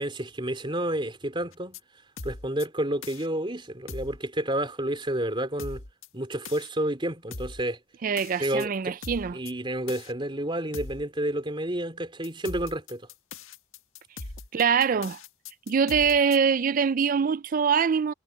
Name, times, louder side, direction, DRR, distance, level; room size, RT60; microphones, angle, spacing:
voice 1, 0.0-1.8 2.2-5.8 6.1-7.8 8.4-8.9 9.3-13.0, right 1 dB, 25° right, 3.6 m, -30 dB
sound 1, 1.5-1.8 2.2-2.7 3.0-3.3 3.9-4.2 5.6-6.1 6.4-6.7 7.3-7.6 8.2-8.7 9.0-9.5 9.9-10.1 10.7-11.0 12.2-16.4, left 3 dB, 75° left, 1.8 m, -40 dB
voice 2, 8.0-9.4 14.5-15.2 15.7-18.1, right 6 dB, 40° right, 0.3 m, -24 dB
head